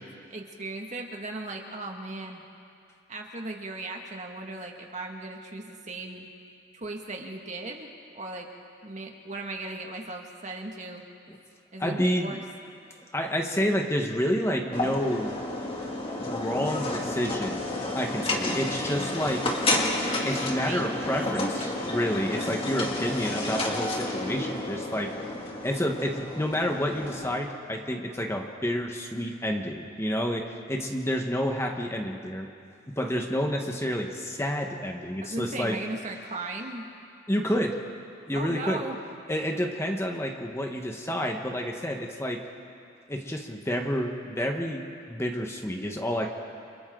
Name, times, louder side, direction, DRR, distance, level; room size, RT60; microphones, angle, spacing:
voice 1, 0.3-2.4 3.1-6.3 6.7-7.9 8.1-8.5 8.8-11.0 11.7-12.4 20.6-20.9 22.3-22.6 35.2-36.9 38.3-39.0, right 2 dB, 40° right, 1 dB, 2.0 m, -37 dB
voice 2, 11.8-12.4 13.1-15.4 16.3-19.5 20.2-25.3 25.6-32.5 32.9-35.8 37.3-37.8 38.3-38.8 39.3-42.4 43.1-46.3, equal, 15° left, 2 dB, 1.4 m, -29 dB
sound 1, 14.7-27.4, left 2 dB, 30° left, 2.4 m, -31 dB
29.5 x 28.5 x 3.9 m, 2.5 s
head